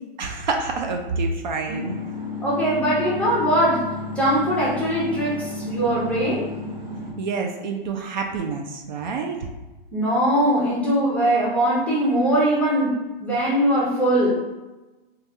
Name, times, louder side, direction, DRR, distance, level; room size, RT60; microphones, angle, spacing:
voice 1, 0.2-2.0 7.2-9.5, right 4 dB, 50° right, 2 dB, 0.4 m, -27 dB
sound 1, 1.7-7.1, left 2 dB, 70° right, 1.3 m, -32 dB
voice 2, 2.4-3.9 4.2-6.5 9.9-12.9 13.2-14.3, right 1 dB, 5° left, -7 dB, 0.6 m, -21 dB
3.2 x 2.3 x 2.6 m, 1.1 s
hypercardioid pair, 140°, 30 cm